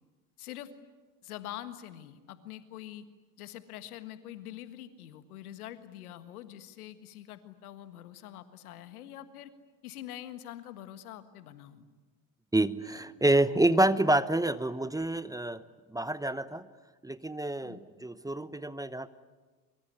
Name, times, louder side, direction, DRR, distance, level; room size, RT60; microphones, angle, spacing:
voice 1, 0.4-0.7 1.2-3.1 3.4-9.5 9.8-11.9 17.6-17.8, left 12 dB, 80° left, 11 dB, 1.7 m, -45 dB
voice 2, 12.5-15.6 15.9-16.7 17.0-19.1, right 1 dB, 10° right, 15 dB, 0.9 m, -28 dB
24.0 x 23.5 x 9.4 m, 1.3 s
hypercardioid pair, 65°, 44 cm